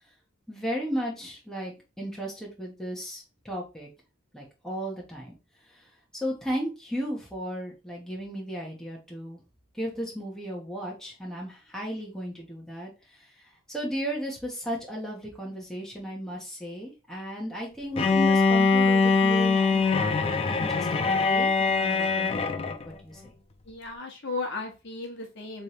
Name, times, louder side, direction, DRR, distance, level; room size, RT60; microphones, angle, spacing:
voice 1, 0.5-3.9 4.3-5.4 5.7-9.4 9.7-23.3, equal, ahead, -3 dB, 1.4 m, -35 dB
Bowed string instrument, 18.0-22.8, left 4 dB, 25° left, 0.4 m, -23 dB
voice 2, 23.7-25.6, left 3 dB, 50° left, 1 dB, 1.2 m, -35 dB
3.6 x 3.4 x 4.4 m, 0.29 s
head